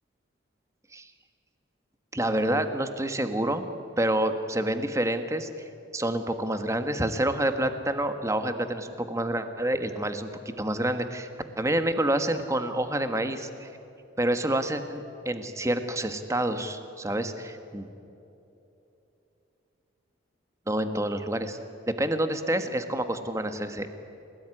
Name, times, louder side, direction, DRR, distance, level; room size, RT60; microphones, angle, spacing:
voice 1, 2.1-3.6 4.0-5.5 5.9-10.3 10.6-11.3 11.6-13.7 14.2-17.9 20.7-21.6 21.9-23.9, right 1 dB, 15° right, 8 dB, 1.5 m, -28 dB
29.0 x 18.5 x 10.0 m, 2.9 s
head